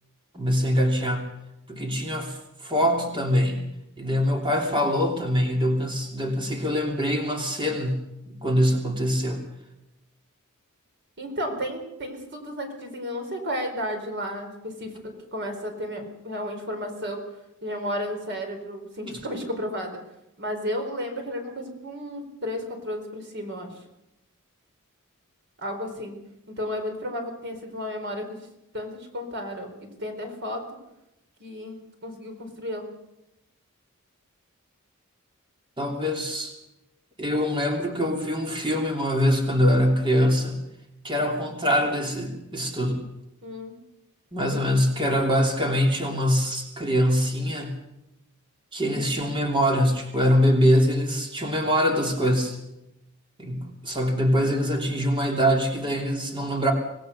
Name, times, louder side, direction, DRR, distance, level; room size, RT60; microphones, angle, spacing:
voice 1, 0.3-1.3 1.7-3.6 4.0-9.4 19.1-19.2 35.8-36.6 37.2-40.6 41.0-43.0 44.3-47.7 48.7-52.6 53.4-56.7, equal, 25° right, 2 dB, 3.0 m, -23 dB
voice 2, 11.2-17.2 17.6-20.0 20.4-23.8 25.6-26.2 26.5-28.4 28.7-30.6 31.4-32.9 43.4-43.7, equal, 55° right, 4 dB, 4.5 m, -33 dB
25.5 x 19.0 x 6.7 m, 0.90 s
head